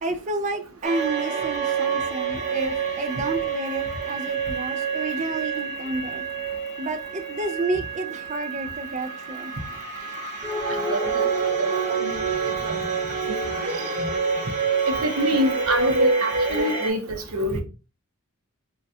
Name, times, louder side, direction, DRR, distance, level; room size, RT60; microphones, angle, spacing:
voice 1, 0.0-6.2 6.8-9.5 12.3-13.0 13.9-14.4, right 2 dB, 30° right, 0.4 m, -31 dB
sound 1, 0.8-16.9, right 4 dB, 15° right, 1.3 m, -27 dB
voice 2, 10.9-11.3 11.6-12.3 12.6-12.7 13.8-13.9 14.9-17.6, right 1 dB, 70° right, 0.7 m, -26 dB
3.3 x 2.3 x 2.7 m
head